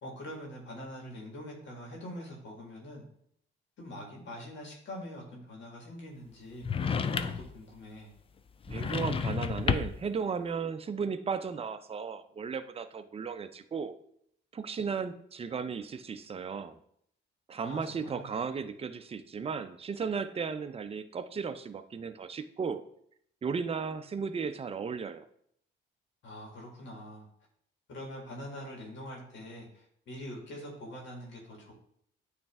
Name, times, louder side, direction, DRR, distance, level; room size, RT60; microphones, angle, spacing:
voice 1, 0.0-3.0 3.8-8.1 17.6-18.3 26.2-27.3 27.9-31.7, equal, 70° left, -1 dB, 1.9 m, -44 dB
sound 1, 6.6-7.6 8.6-10.1, left 6 dB, 30° left, 0.4 m, -31 dB
voice 2, 8.7-13.9 14.5-16.8 17.5-22.8 23.4-25.3, right 5 dB, 30° right, 9 dB, 0.5 m, -35 dB
8.5 x 3.2 x 3.5 m, 0.68 s
cardioid pair, 90°, 20 cm